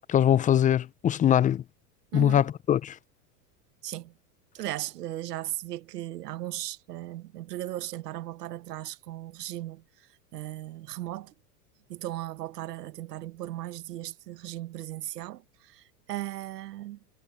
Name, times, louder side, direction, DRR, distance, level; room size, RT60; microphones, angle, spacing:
voice 1, 0.1-1.6 2.1-3.0, left 10 dB, 20° left, 0.4 m, -22 dB
voice 2, 2.1-2.5 3.8-4.1 4.5-11.3 11.9-17.0, right 14 dB, 85° right, 1.4 m, -37 dB
hypercardioid pair, 105°, 47 cm